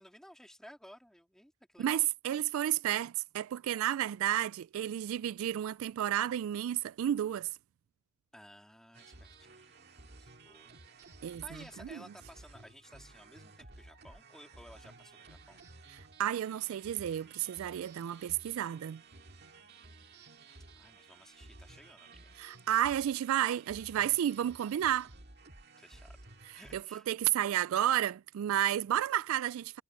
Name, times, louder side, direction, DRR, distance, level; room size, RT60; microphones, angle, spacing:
voice 1, 0.0-2.0 8.3-10.8 11.4-15.6 19.6-20.3 20.8-22.3 25.8-26.2 26.5-27.1, equal, ahead, 3.0 m, -56 dB
voice 2, 1.8-7.5 11.2-11.4 11.9-12.0 16.2-19.0 22.4-25.1 26.7-29.8, right 11 dB, 80° right, 0.3 m, -31 dB
sound 1, 8.9-26.8, right 3 dB, 50° right, 2.1 m, -55 dB
head